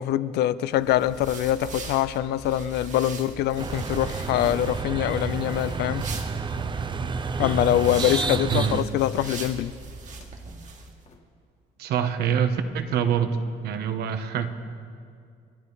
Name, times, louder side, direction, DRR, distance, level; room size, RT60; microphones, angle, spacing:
voice 1, 0.0-6.1 7.4-9.7, left 12 dB, 80° left, 16 dB, 0.6 m, -24 dB
sound 1, 0.7-10.9, right 4 dB, 45° right, 2.0 m, -40 dB
sound 2, 3.6-4.0 4.3-4.4 4.6-4.9 5.4-5.9 6.5-6.8 7.4-8.6 9.2-9.5 10.1-10.5 11.0-11.2, left 5 dB, 40° left, 1.9 m, -50 dB
sound 3, 3.6-8.8, right 4 dB, 30° right, 0.7 m, -30 dB
voice 2, 8.5-8.8 11.8-13.4 13.6-14.5, right 8 dB, 75° right, 8 dB, 1.2 m, -25 dB
29.5 x 11.0 x 4.1 m, 2.2 s
cardioid pair, 110°, 17 cm